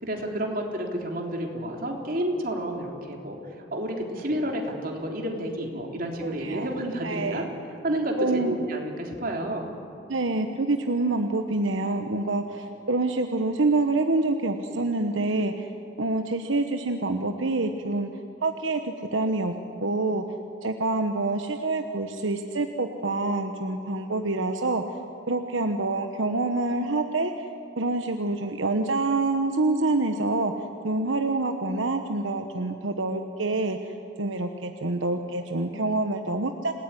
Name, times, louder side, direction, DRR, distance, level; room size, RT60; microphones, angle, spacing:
voice 1, 0.0-3.4 3.7-7.4 7.8-9.7 35.7-36.0, right 1 dB, 45° right, 1 dB, 3.6 m, -30 dB
voice 2, 6.2-6.7 7.0-7.5 8.2-8.6 10.1-15.7 16.0-18.1 18.4-19.5 19.8-20.4 20.6-25.0 25.3-27.5 27.8-30.5 30.8-36.7, right 2 dB, 80° right, 5 dB, 1.2 m, -26 dB
27.5 x 19.0 x 9.9 m, 2.6 s
head